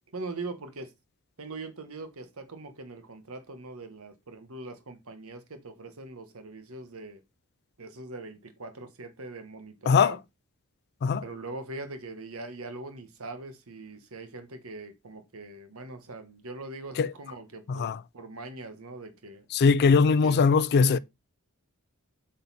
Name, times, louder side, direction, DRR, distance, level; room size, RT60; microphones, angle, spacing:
voice 1, 0.1-0.9 1.4-7.2 7.8-10.2 11.2-19.5 20.2-20.5 20.9-21.0, right 2 dB, 65° right, 1.3 m, -41 dB
voice 2, 19.5-21.0, left 5 dB, 45° left, 0.3 m, -21 dB
8.2 x 4.1 x 4.1 m
head